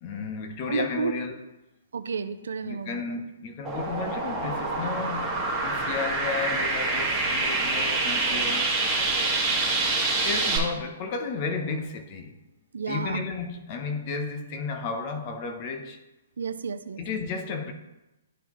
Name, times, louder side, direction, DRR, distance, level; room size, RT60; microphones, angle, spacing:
voice 1, 0.0-1.4 2.6-8.9 10.2-12.4 12.8-16.0 17.0-17.7, left 4 dB, 35° left, 0.8 m, -33 dB
voice 2, 0.7-1.1 1.9-3.1 12.7-13.2 16.4-17.0, right 6 dB, 90° right, 0.4 m, -31 dB
sound 1, 3.6-10.6, right 3 dB, 5° right, 1.5 m, -26 dB
11.0 x 3.9 x 3.0 m
hypercardioid pair, 160°, 0 cm